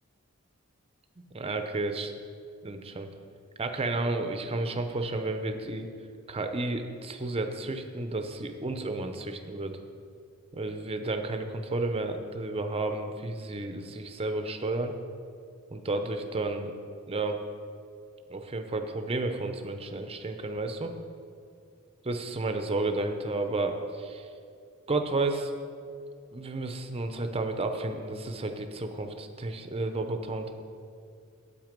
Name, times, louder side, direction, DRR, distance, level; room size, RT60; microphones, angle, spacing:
voice 1, 1.3-2.1 2.6-3.1 3.6-5.9 6.3-9.7 10.5-14.9 15.7-16.7 17.1-17.4 18.3-20.9 22.0-24.3 24.9-25.5 26.3-30.5, right 2 dB, 25° right, 6 dB, 0.7 m, -32 dB
9.1 x 8.2 x 5.2 m, 2.4 s
head